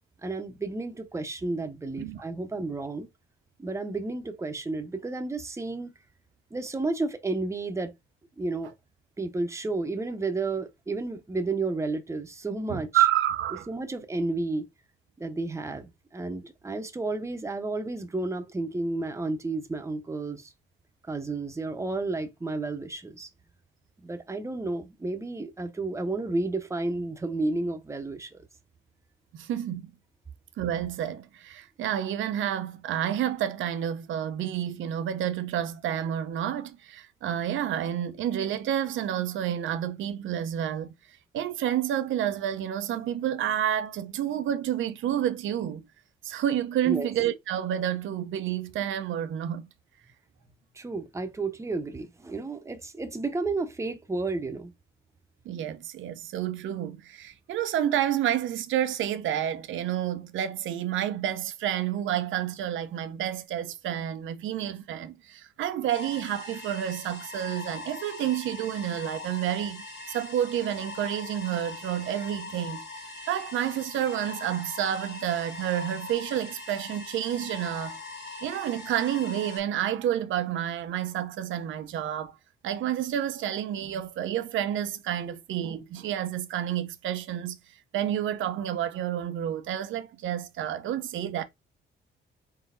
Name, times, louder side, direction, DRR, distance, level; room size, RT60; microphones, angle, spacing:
voice 1, 0.2-3.1 3.6-5.9 6.5-7.9 8.4-8.7 9.2-13.0 13.7-14.7 15.2-20.5 21.0-23.3 24.0-28.5 46.8-47.1 50.7-54.7, right 3 dB, 15° right, 0.8 m, -32 dB
voice 2, 12.7-13.7 29.3-29.9 30.6-45.9 46.2-49.7 55.4-78.0 78.4-82.4 82.6-87.6 87.9-91.4, right 11 dB, 75° right, 0.7 m, -29 dB
sound 1, 65.9-79.6, left 3 dB, 60° left, 1.3 m, -41 dB
4.0 x 3.9 x 2.6 m
cardioid pair, 90°, 20 cm